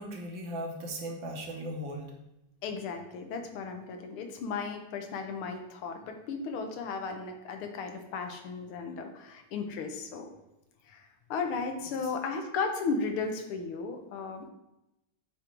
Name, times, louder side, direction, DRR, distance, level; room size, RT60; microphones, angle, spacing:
voice 1, 0.0-2.1 12.0-12.1, right 1 dB, 65° right, 1 dB, 1.8 m, -38 dB
voice 2, 2.6-10.3 10.9-14.5, left 4 dB, 80° left, 5 dB, 1.8 m, -35 dB
8.4 x 3.9 x 4.4 m, 0.90 s
omnidirectional pair, 2.4 m